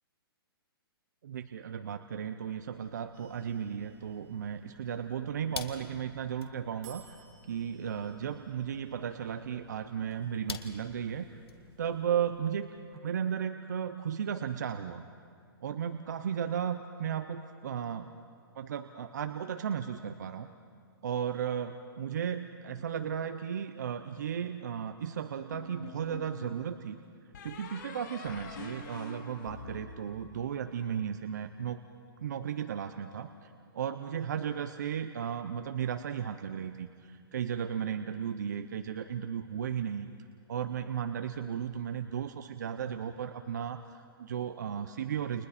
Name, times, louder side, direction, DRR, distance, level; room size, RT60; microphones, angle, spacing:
voice 1, 1.2-7.2 7.5-11.3 11.8-12.7 13.0-15.0 15.6-18.1 18.5-20.5 21.0-27.0 27.4-31.8 32.2-40.1 40.5-45.5, right 8 dB, 45° right, 9 dB, 0.7 m, -35 dB
sound 1, 2.6-13.0, left 6 dB, 75° left, 1.8 m, -50 dB
sound 2, 3.1-5.1 6.8-12.8, right 6 dB, 20° right, 2.0 m, -61 dB
sound 3, 25.5-26.4 27.3-30.7, left 4 dB, 50° left, 5.7 m, -46 dB
29.5 x 28.0 x 4.3 m, 2.3 s
hypercardioid pair, 175°, 13 cm